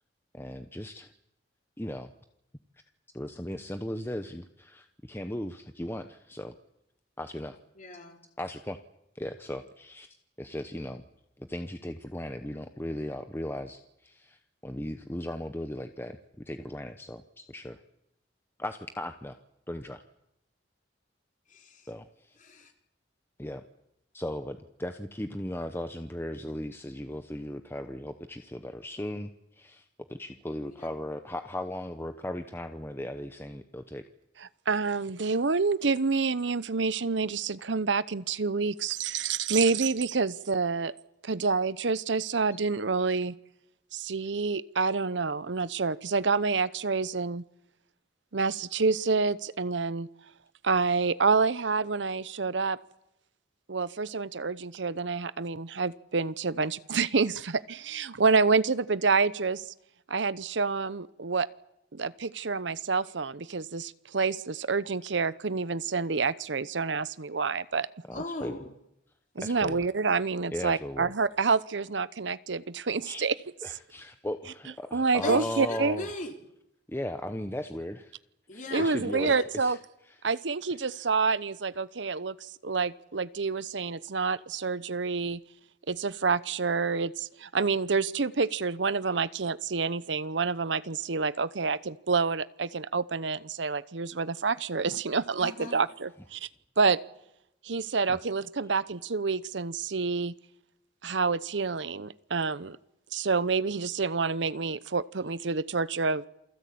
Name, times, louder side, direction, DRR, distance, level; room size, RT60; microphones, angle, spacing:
voice 1, 0.3-1.1 1.8-2.1 3.1-6.5 7.2-7.6 8.4-8.8 9.1-10.1 10.4-11.0 11.4-17.8 18.6-19.4 19.7-20.0 21.9-22.4 23.4-23.6 24.1-34.0 68.1-68.6 69.4-69.8 70.5-71.1 73.0-73.3 73.6-76.1 76.9-78.2 78.5-79.8 80.1-80.2 80.9-81.1 89.1-89.3 98.1-98.2, left 1 dB, 15° left, 8 dB, 0.9 m, -37 dB
voice 2, 7.8-8.2 21.5-21.9 22.4-22.7 30.6-30.9 68.1-68.7 75.2-76.3 78.5-79.4 95.4-95.8, left 2 dB, 45° left, 4 dB, 4.0 m, -38 dB
voice 3, 34.7-40.9 41.2-43.3 43.9-47.4 48.3-50.1 50.6-52.8 53.7-59.7 60.1-61.5 61.9-67.9 69.4-73.3 74.9-76.0 78.7-79.8 80.2-85.4 85.9-96.5 96.8-97.0 97.6-100.3 101.0-102.8 103.1-106.2, right 4 dB, 80° right, 17 dB, 0.9 m, -28 dB
28.0 x 18.0 x 8.6 m, 0.83 s
head